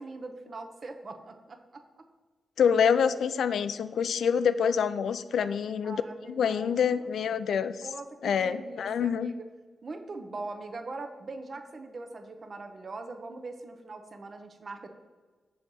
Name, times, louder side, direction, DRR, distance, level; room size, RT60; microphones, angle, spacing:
voice 1, 0.0-2.1 5.4-5.5 5.8-7.1 7.8-9.5 9.8-14.9, right 3 dB, 40° right, 6 dB, 0.6 m, -41 dB
voice 2, 2.6-6.0 6.3-7.9 8.2-9.3, left 7 dB, 80° left, 14 dB, 0.3 m, -26 dB
6.9 x 4.0 x 6.1 m, 1.4 s
wide cardioid pair, 145°, 0 cm